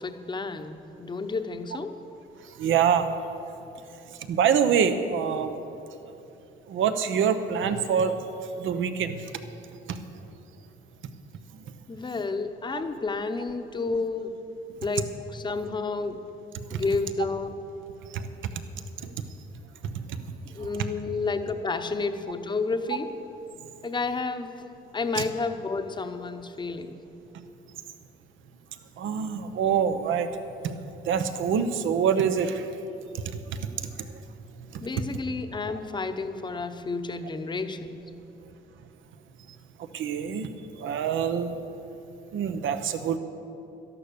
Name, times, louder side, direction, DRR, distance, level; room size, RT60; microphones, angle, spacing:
voice 1, 0.0-2.0 11.9-14.4 14.8-16.2 16.7-17.7 20.4-23.2 23.8-24.6 24.9-27.0 34.8-38.0, left 3 dB, 25° left, 8 dB, 0.8 m, -31 dB
voice 2, 2.6-3.1 4.3-5.6 6.7-8.1 8.6-9.1 16.7-16.8 25.1-25.2 29.0-30.3 31.1-32.6 34.7-34.8 39.9-40.5 40.8-41.5 42.3-43.2, right 7 dB, 75° right, 9 dB, 0.9 m, -25 dB
12.5 x 11.0 x 6.9 m, 2.9 s
cardioid pair, 90°, 20 cm